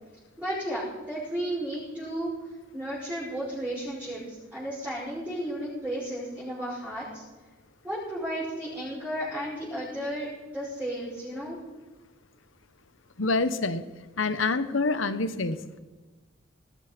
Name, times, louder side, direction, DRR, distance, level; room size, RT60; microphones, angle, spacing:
voice 1, 0.4-2.3 2.7-7.2 7.8-10.3 10.5-11.6, right 1 dB, 5° right, -11 dB, 6.1 m, -33 dB
voice 2, 13.2-13.9 14.2-15.8, left 3 dB, 80° left, 13 dB, 1.0 m, -27 dB
19.5 x 13.5 x 5.2 m, 1.3 s
head